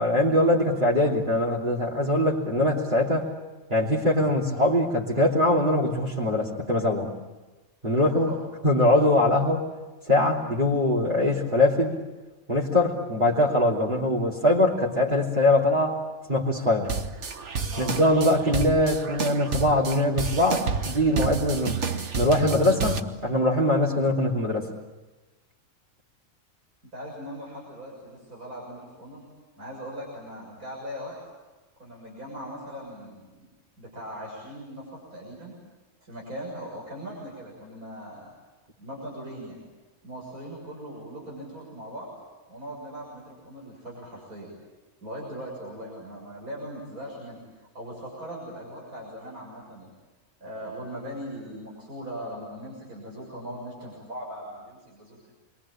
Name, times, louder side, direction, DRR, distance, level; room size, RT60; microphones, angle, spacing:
voice 1, 0.0-3.3 3.7-7.1 7.8-8.3 8.6-9.6 10.1-11.9 12.5-16.0 16.3-16.9 17.8-21.8 22.2-24.7, left 1 dB, 35° right, -7 dB, 3.4 m, -22 dB
voice 2, 8.0-8.4 17.7-18.0 26.9-29.2 29.6-31.2 31.8-33.4 33.8-35.5 36.0-38.3 38.8-39.6 40.0-42.1 42.5-44.5 45.0-49.9 50.4-55.2, equal, 90° right, -3 dB, 7.2 m, -39 dB
sound 1, 16.9-23.0, right 5 dB, 55° right, 1.6 m, -30 dB
29.0 x 23.0 x 8.7 m, 1.2 s
omnidirectional pair, 1.5 m